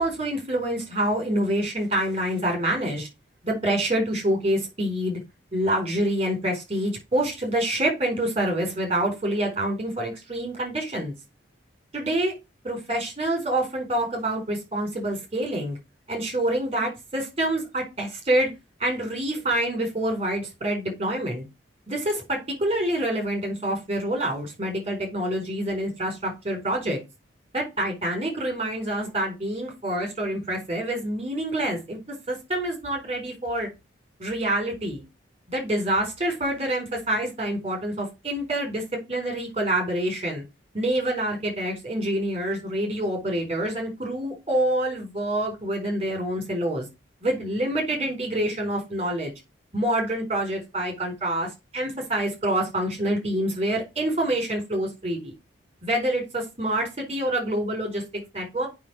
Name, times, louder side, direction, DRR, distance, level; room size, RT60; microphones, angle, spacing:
voice 1, 0.0-3.1 3.4-5.2 5.5-11.1 11.9-12.3 12.6-15.8 16.1-18.5 18.8-21.4 21.9-27.0 27.5-32.0 32.3-33.7 34.2-35.0 35.5-38.8 39.1-40.4 40.7-46.9 47.2-49.3 49.7-55.3 55.8-58.0 58.3-58.7, right 1 dB, 30° right, 2 dB, 4.4 m, -26 dB
7.5 x 6.0 x 6.1 m, 0.25 s
head